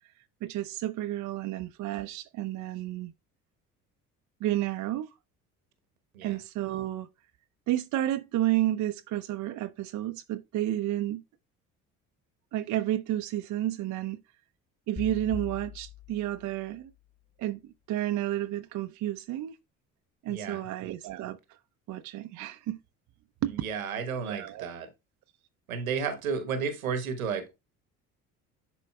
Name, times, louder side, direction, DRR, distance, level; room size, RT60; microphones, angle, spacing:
voice 1, 0.4-3.1 4.4-5.1 6.2-7.1 7.7-11.2 12.5-14.2 14.9-16.9 17.4-19.6 20.2-21.4 21.9-22.8 23.4-23.6 24.2-24.7, right 13 dB, 45° right, 0.7 m, -31 dB
sound 1, 15.0-17.2, left 7 dB, 45° left, 4.8 m, -43 dB
voice 2, 20.2-20.7 23.5-24.9 25.7-27.5, right 6 dB, 80° right, 1.2 m, -32 dB
10.5 x 4.4 x 2.3 m
figure-of-eight pair, 55°, 42 cm